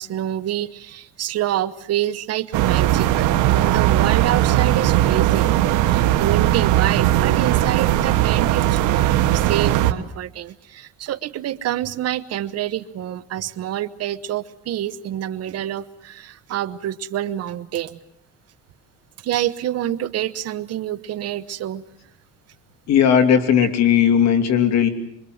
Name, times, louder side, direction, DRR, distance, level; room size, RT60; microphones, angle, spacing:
voice 1, 0.0-5.5 5.8-18.0 19.2-21.8, right 12 dB, 55° right, 13 dB, 1.1 m, -27 dB
sound 1, 2.5-9.9, right 13 dB, 80° right, 1.5 m, -18 dB
voice 2, 22.9-24.9, left 8 dB, 60° left, 5 dB, 3.0 m, -16 dB
26.0 x 23.5 x 7.9 m, 0.72 s
cardioid pair, 125°, 30 cm